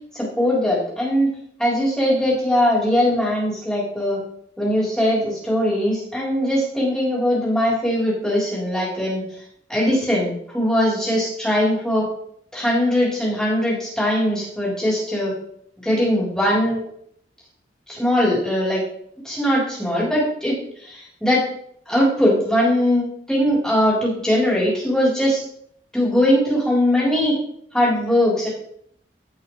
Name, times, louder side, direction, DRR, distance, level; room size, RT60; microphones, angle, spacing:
voice 1, 0.1-1.3 1.6-4.2 4.6-9.2 9.7-12.1 12.5-15.3 15.8-16.8 17.9-18.8 19.2-21.5 21.9-25.4 25.9-27.4 27.7-28.5, equal, 5° left, -6 dB, 3.8 m, -20 dB
16.0 x 6.2 x 3.2 m, 0.68 s
head